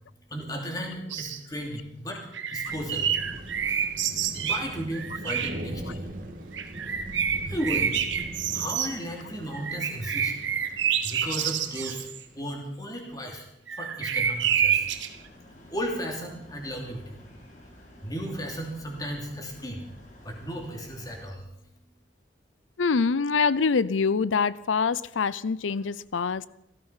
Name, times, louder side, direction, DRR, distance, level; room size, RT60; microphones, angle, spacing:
voice 1, 0.3-2.3 2.5-3.2 4.2-6.1 7.4-7.9 8.5-10.3 11.0-12.1 12.3-13.4 13.8-14.9 15.7-17.2 18.0-19.8 20.2-21.4, equal, 20° left, 2.9 m, -34 dB
sound 1, 1.1-1.4 2.1-5.6 6.5-8.9 9.5-12.2 13.7-15.1, right 8 dB, 80° right, 1.3 m, -28 dB
Thunder, 2.7-12.4, right 1 dB, 45° right, 1.8 m, -41 dB
sound 2, 14.2-21.3, left 1 dB, 40° left, 3.5 m, -51 dB
voice 2, 22.8-26.5, left 5 dB, 90° left, 0.6 m, -25 dB
16.5 x 14.0 x 5.8 m
head